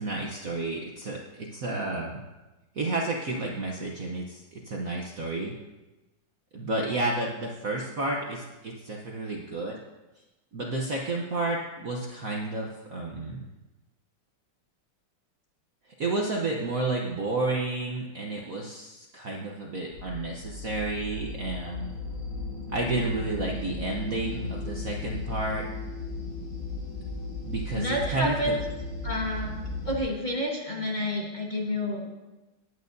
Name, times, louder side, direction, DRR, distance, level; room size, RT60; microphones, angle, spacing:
voice 1, 0.0-2.2 2.7-5.5 6.5-9.8 10.5-13.5 16.0-21.9 22.7-25.6 27.5-28.6, right 2 dB, 55° right, -1 dB, 1.1 m, -31 dB
sound 1, 19.9-30.0, left 2 dB, 50° left, 4.8 m, -36 dB
voice 2, 27.7-28.6 29.0-29.5 29.8-32.1, left 1 dB, 25° left, -3 dB, 1.3 m, -29 dB
19.0 x 8.9 x 2.7 m, 1.1 s
omnidirectional pair, 2.4 m